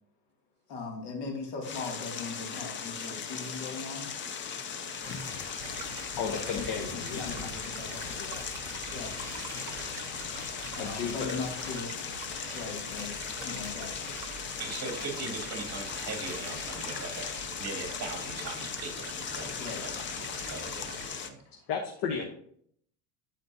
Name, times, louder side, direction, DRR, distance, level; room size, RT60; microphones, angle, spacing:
voice 1, 0.7-4.1 6.3-8.0 8.9-9.1 10.7-11.9 12.5-13.9 19.6-19.9 20.3-20.4 20.9-21.0, left 4 dB, 70° left, 0 dB, 2.5 m, -39 dB
sound 1, 1.6-21.3, left 6 dB, 25° left, 0.5 m, -38 dB
sound 2, 5.0-17.6, equal, 5° left, 1.2 m, -47 dB
Stream, 5.6-21.1, right 7 dB, 55° right, 0.9 m, -47 dB
voice 2, 6.2-7.3 8.2-8.5 10.8-11.4 21.7-22.3, left 6 dB, 50° left, 2 dB, 1.1 m, -34 dB
voice 3, 14.6-21.4, right 4 dB, 30° right, 2 dB, 2.4 m, -40 dB
11.5 x 4.2 x 2.7 m, 0.65 s
supercardioid pair, 135°, 50 cm